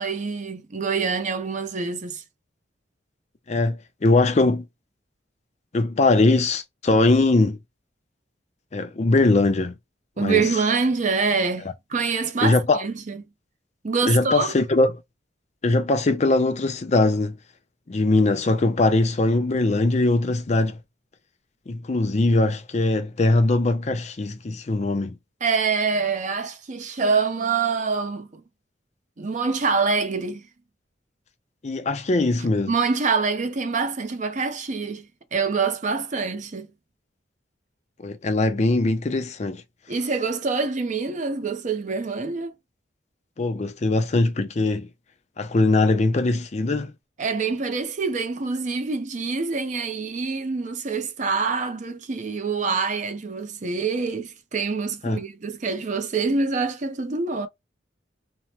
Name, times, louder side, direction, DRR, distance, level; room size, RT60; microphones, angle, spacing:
voice 1, 0.0-2.2 10.2-13.2 13.8-14.5 25.4-28.4 29.2-30.5 32.7-36.7 39.9-42.5 47.2-57.5, right 4 dB, 40° right, 0.5 m, -25 dB
voice 2, 3.5-4.6 5.7-7.6 8.7-9.7 10.2-10.5 12.4-12.8 14.1-14.9 15.6-17.4 17.9-20.8 21.7-25.2 31.6-32.7 38.0-39.6 43.4-44.9 45.4-46.9 55.0-55.2, left 2 dB, 35° left, 0.5 m, -21 dB
3.0 x 2.1 x 2.8 m
head